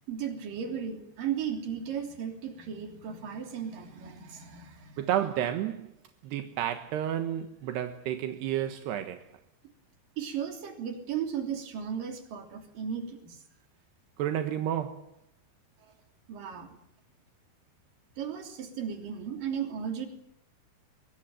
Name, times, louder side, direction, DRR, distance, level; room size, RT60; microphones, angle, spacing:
voice 1, 0.1-5.0 10.2-13.4 16.3-16.8 18.2-20.1, right 8 dB, 60° right, 4.9 m, -35 dB
voice 2, 5.0-5.9 6.2-9.3 14.2-15.2, right 11 dB, 80° right, 3.4 m, -31 dB
24.0 x 23.5 x 9.1 m
omnidirectional pair, 4.7 m